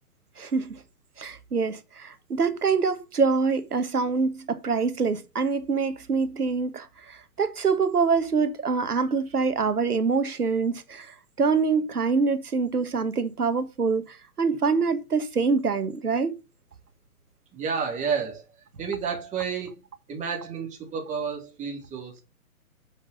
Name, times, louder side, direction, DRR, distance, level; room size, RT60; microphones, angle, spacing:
voice 1, 0.4-0.8 1.2-16.3, right 5 dB, 85° right, 1.6 m, -25 dB
voice 2, 17.5-18.4 18.8-19.8 20.1-22.2, right 6 dB, 15° right, 2.9 m, -30 dB
7.2 x 5.3 x 6.6 m
hypercardioid pair, 135°, 44 cm